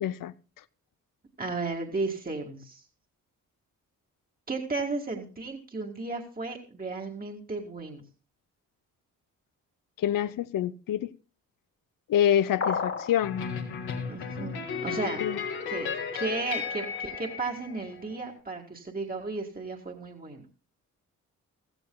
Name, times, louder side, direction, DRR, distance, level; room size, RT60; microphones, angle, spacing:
voice 1, 0.0-0.3 10.0-11.1 12.1-13.4 15.2-15.4, left 10 dB, 60° left, 0.7 m, -26 dB
voice 2, 1.4-2.8 4.5-8.0 14.1-15.2 15.7-15.9 16.1-20.4, right 3 dB, 25° right, 2.0 m, -34 dB
sound 1, 12.6-13.2, left 5 dB, 40° left, 1.6 m, -29 dB
sound 2, 13.2-18.3, left 6 dB, 80° left, 2.0 m, -34 dB
16.5 x 14.0 x 2.3 m
supercardioid pair, 50°, 38 cm